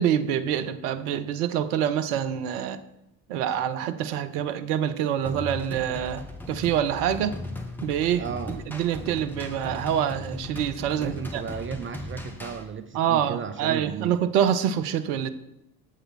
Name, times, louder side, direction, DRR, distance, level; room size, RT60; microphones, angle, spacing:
voice 1, 0.0-2.8 3.3-7.4 7.8-11.4 12.9-15.3, right 9 dB, 65° right, 11 dB, 0.7 m, -26 dB
sound 1, 5.2-12.6, left 1 dB, 5° left, 1.3 m, -37 dB
voice 2, 8.2-8.6 11.0-14.2, right 7 dB, 25° right, 9 dB, 0.4 m, -34 dB
7.7 x 6.5 x 4.2 m, 0.87 s
figure-of-eight pair, 50°, 49 cm